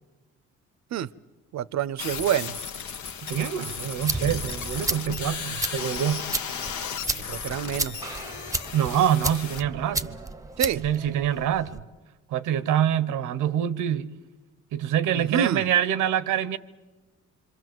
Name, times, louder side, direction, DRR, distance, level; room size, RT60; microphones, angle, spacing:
voice 1, 1.5-2.5 7.1-8.0 10.6-10.8 15.1-15.7, right 9 dB, 65° right, 0.7 m, -27 dB
sound 1, 2.0-9.6, left 6 dB, 75° left, 1.3 m, -35 dB
voice 2, 3.2-6.2 8.7-10.2 10.7-11.8 12.3-14.1 14.7-16.6, right 10 dB, 90° right, 1.0 m, -25 dB
sound 2, 3.7-11.8, right 2 dB, 10° right, 0.9 m, -33 dB
26.0 x 24.5 x 7.7 m
cardioid pair, 90°, 30 cm